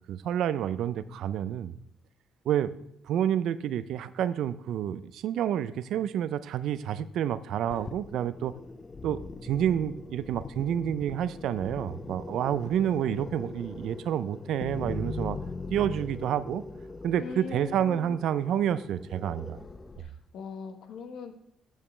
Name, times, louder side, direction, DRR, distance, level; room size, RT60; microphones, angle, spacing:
voice 1, 0.1-1.7 2.5-2.7 3.1-8.5 9.0-15.4 15.7-16.6 17.0-19.6, right 10 dB, 75° right, 15 dB, 0.4 m, -29 dB
sound 1, 7.7-20.0, left 3 dB, 30° left, 0.6 m, -41 dB
voice 2, 17.2-18.2 20.0-21.3, left 5 dB, 75° left, 7 dB, 1.1 m, -41 dB
13.5 x 5.2 x 3.2 m, 0.75 s
cardioid pair, 80°, 0 cm